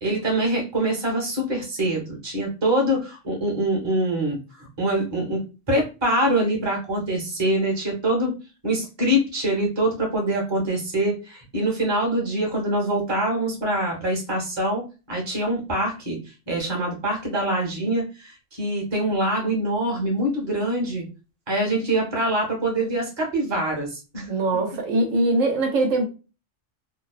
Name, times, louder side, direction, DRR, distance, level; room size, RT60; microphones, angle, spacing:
voice 1, 0.0-8.3 8.6-16.2 16.5-21.0 21.5-24.3, right 1 dB, 25° right, 0.9 m, -24 dB
voice 2, 24.3-26.1, right 2 dB, 85° right, 1.1 m, -22 dB
2.6 x 2.1 x 2.4 m
omnidirectional pair, 1.3 m